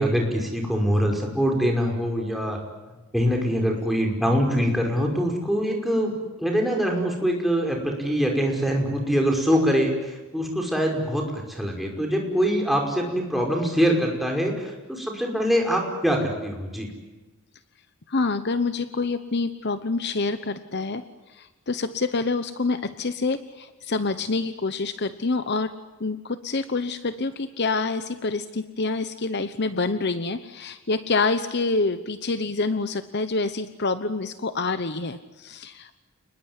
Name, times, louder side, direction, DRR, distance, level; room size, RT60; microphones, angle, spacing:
voice 1, 0.0-2.6 3.1-6.1 6.4-16.9, equal, ahead, 2 dB, 5.4 m, -24 dB
voice 2, 18.1-21.0 21.3-25.7 26.0-36.0, left 3 dB, 50° left, 11 dB, 1.0 m, -27 dB
29.5 x 20.5 x 9.8 m, 1.2 s
head